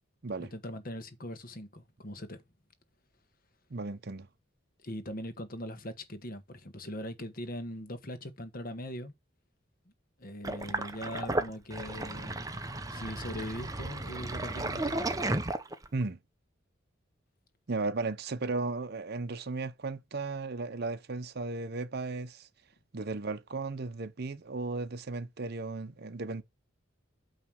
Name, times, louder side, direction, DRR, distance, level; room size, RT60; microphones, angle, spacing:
voice 1, 0.4-2.4 4.8-9.1 10.2-12.4 12.9-15.1, left 1 dB, 45° left, 1.2 m, -41 dB
voice 2, 3.7-4.3 15.9-16.2 17.7-22.5 22.9-26.4, right 3 dB, 55° right, 0.7 m, -35 dB
Sink (filling or washing), 10.4-16.0, right 2 dB, 20° right, 0.7 m, -34 dB
9.0 x 3.1 x 6.3 m
head